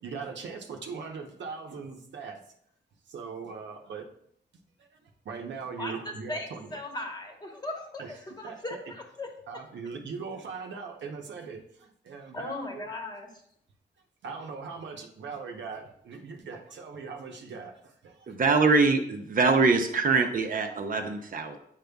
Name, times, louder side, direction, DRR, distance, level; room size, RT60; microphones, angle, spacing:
voice 1, 0.0-2.4 3.1-4.1 4.8-6.8 8.0-8.2 8.4-8.8 9.5-12.9 14.2-18.4, right 5 dB, 80° right, 3 dB, 0.8 m, -40 dB
voice 2, 6.3-9.6 12.3-13.3, left 2 dB, 20° left, 2 dB, 1.1 m, -38 dB
voice 3, 18.3-21.6, right 4 dB, 50° right, 5 dB, 0.7 m, -23 dB
8.9 x 5.2 x 2.3 m, 0.69 s
wide cardioid pair, 115°, 18 cm